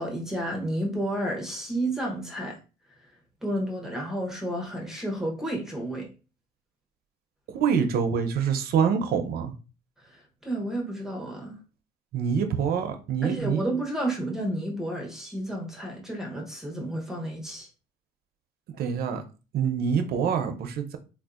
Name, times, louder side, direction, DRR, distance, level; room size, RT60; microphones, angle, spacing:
voice 1, 0.0-2.6 3.4-6.1 10.0-11.6 13.2-17.7, right 1 dB, 5° right, 0.9 m, -31 dB
voice 2, 7.5-9.5 12.1-13.6 18.8-19.2 19.5-21.0, right 7 dB, 65° right, 0.6 m, -25 dB
3.7 x 2.6 x 2.4 m
cardioid pair, 110°, 17 cm